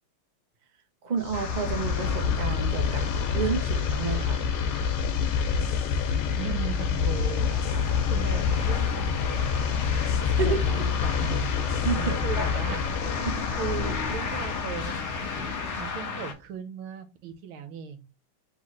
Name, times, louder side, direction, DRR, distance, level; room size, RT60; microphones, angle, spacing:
voice 1, 1.0-3.1 3.3-4.5 10.2-10.8 11.7-12.5 13.2-13.3, right 5 dB, 55° right, 4 dB, 0.4 m, -31 dB
sound 1, 1.2-16.0, left 6 dB, 85° left, 1.6 m, -27 dB
sound 2, 1.3-16.3, left 4 dB, 50° left, 0.9 m, -35 dB
voice 2, 6.4-7.5 8.1-9.7 10.4-11.5 12.0-12.8 13.5-18.1, right 7 dB, 80° right, 8 dB, 1.6 m, -37 dB
4.1 x 3.9 x 3.1 m, 0.27 s
omnidirectional pair, 2.3 m